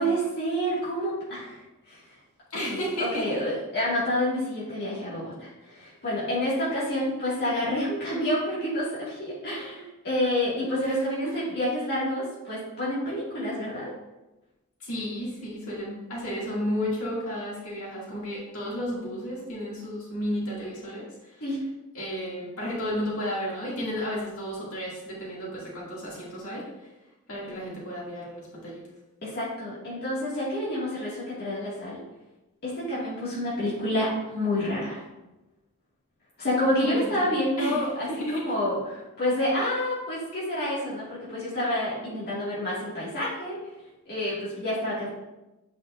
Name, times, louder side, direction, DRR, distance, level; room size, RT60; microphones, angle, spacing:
voice 1, 0.0-1.6 1.9-2.0 2.7-2.8 3.1-13.9 21.4-21.6 29.2-32.0 32.6-35.0 36.4-43.6 44.1-45.1, left 1 dB, 50° left, -9 dB, 1.9 m, -28 dB
voice 2, 2.5-3.4 10.8-10.9 11.4-11.5 14.8-21.1 21.3-21.4 21.9-26.9 27.3-28.8 37.0-37.3 37.6-38.5, equal, 70° left, -6 dB, 2.3 m, -33 dB
8.3 x 5.0 x 2.5 m, 1.0 s
head